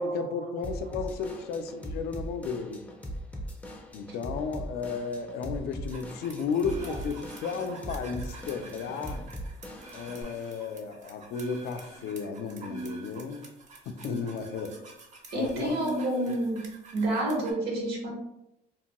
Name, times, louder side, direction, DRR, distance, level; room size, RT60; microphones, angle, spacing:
voice 1, 0.0-2.8 3.9-9.2 9.9-13.5 13.9-14.7 15.3-15.8, left 5 dB, 70° left, 7 dB, 0.4 m, -33 dB
Drum kit / Drum, 0.6-10.2, equal, 10° left, 0.4 m, -40 dB
sound 1, 5.9-17.5, right 2 dB, 45° right, 0.6 m, -43 dB
voice 2, 15.3-16.6 16.9-18.1, right 1 dB, 75° right, -1 dB, 1.0 m, -29 dB
3.0 x 2.2 x 2.9 m, 0.88 s
cardioid pair, 110°, 17 cm